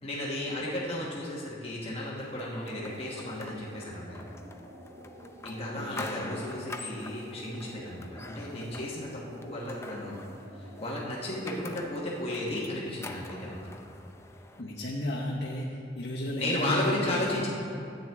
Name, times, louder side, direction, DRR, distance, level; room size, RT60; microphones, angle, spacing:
voice 1, 0.0-4.3 5.4-10.2 10.5-13.7 16.4-17.5, left 1 dB, 35° left, -5 dB, 1.2 m, -34 dB
sound 1, 2.3-14.6, left 2 dB, 15° left, 0.5 m, -46 dB
sound 2, 2.6-12.2, equal, 75° right, 1.3 m, -50 dB
voice 2, 5.7-6.4 14.6-17.5, left 1 dB, 75° left, -3 dB, 0.9 m, -34 dB
12.5 x 8.9 x 3.5 m, 2.5 s
head